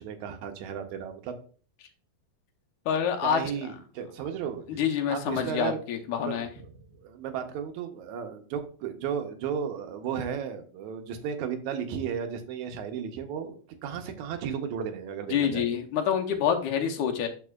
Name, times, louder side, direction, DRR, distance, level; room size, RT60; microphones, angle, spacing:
voice 1, 0.0-1.4 3.2-4.8 5.1-5.8 6.2-13.6 13.8-15.7, right 7 dB, 75° right, 6 dB, 2.1 m, -34 dB
voice 2, 2.9-3.4 4.7-6.5 15.3-17.3, left 8 dB, 80° left, 5 dB, 2.2 m, -27 dB
12.5 x 4.3 x 2.3 m, 0.40 s
omnidirectional pair, 3.5 m